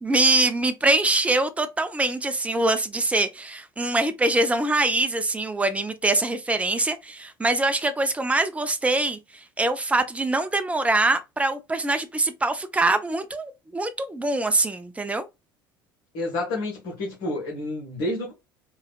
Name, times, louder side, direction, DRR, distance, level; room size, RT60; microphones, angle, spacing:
voice 1, 0.0-15.2, right 2 dB, 10° right, 0.7 m, -24 dB
voice 2, 16.1-18.3, left 2 dB, 55° left, 1.5 m, -29 dB
4.2 x 2.4 x 2.4 m
figure-of-eight pair, 65°, 11 cm